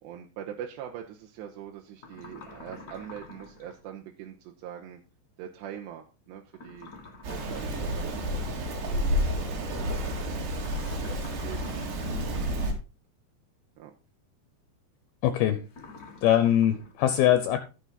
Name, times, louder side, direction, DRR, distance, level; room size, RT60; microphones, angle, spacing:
voice 1, 0.0-5.0 5.4-6.9 7.3-9.9 10.1-10.3 11.0-11.8 12.1-12.5 13.8-13.9, right 10 dB, 90° right, 1 dB, 3.2 m, -43 dB
sound 1, 2.0-3.8 6.5-8.2 10.6-12.6 15.7-16.9, left 3 dB, 45° left, 1.2 m, -48 dB
Rain, 7.2-12.7, equal, 75° right, 4.5 m, -30 dB
voice 2, 15.2-15.6 16.2-17.6, left 11 dB, 75° left, 10 dB, 2.6 m, -22 dB
15.0 x 6.2 x 4.1 m, 0.32 s
omnidirectional pair, 4.8 m